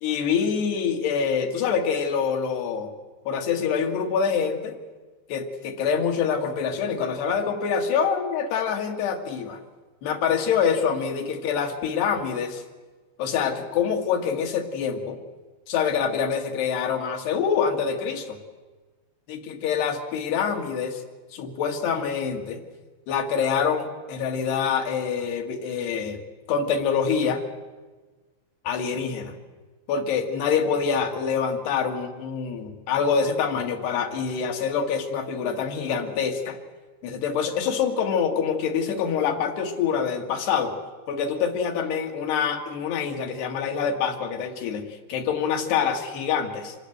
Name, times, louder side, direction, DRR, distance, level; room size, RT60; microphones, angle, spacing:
voice 1, 0.0-2.9 3.3-4.8 5.3-9.6 10.0-12.6 13.2-15.2 15.7-18.4 19.3-21.0 21.3-22.6 23.1-26.2 26.5-27.4 28.7-29.3 29.9-36.6 37.0-40.7 41.1-46.8, left 6 dB, 85° left, 4 dB, 4.0 m, -25 dB
26.0 x 17.0 x 8.0 m, 1.3 s
omnidirectional pair, 4.5 m